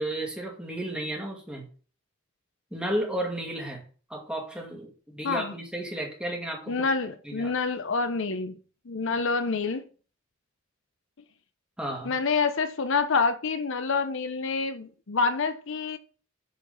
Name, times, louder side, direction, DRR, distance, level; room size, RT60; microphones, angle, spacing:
voice 1, 0.0-1.6 2.7-3.8 4.1-6.8 7.2-7.5 11.8-12.1, right 1 dB, 5° right, 2.3 m, -33 dB
voice 2, 6.7-8.6 8.9-9.8 12.0-16.0, left 4 dB, 65° left, 0.7 m, -27 dB
9.3 x 4.6 x 5.4 m
head